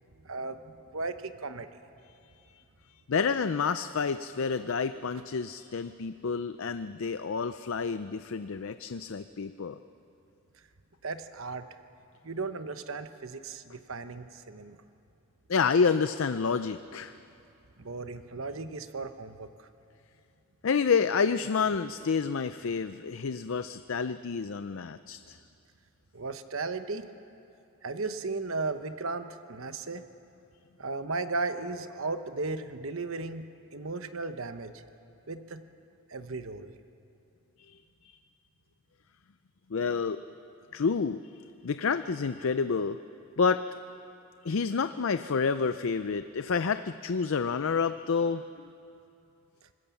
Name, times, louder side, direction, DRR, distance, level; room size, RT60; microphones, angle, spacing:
voice 1, 0.2-1.7 11.0-11.7 12.2-14.8 17.8-19.7 26.1-27.1 27.8-30.0 30.8-33.5 33.7-34.7 35.3-35.6 36.1-36.7, right 3 dB, 70° right, 9 dB, 1.0 m, -35 dB
voice 2, 3.1-9.8 15.5-17.1 20.6-25.4 37.7-37.8 38.0-38.2 39.7-40.2 40.7-41.3 41.6-43.0 43.4-43.6 44.4-48.6, left 5 dB, 70° left, 11 dB, 0.5 m, -29 dB
26.0 x 19.5 x 7.1 m, 2.7 s
head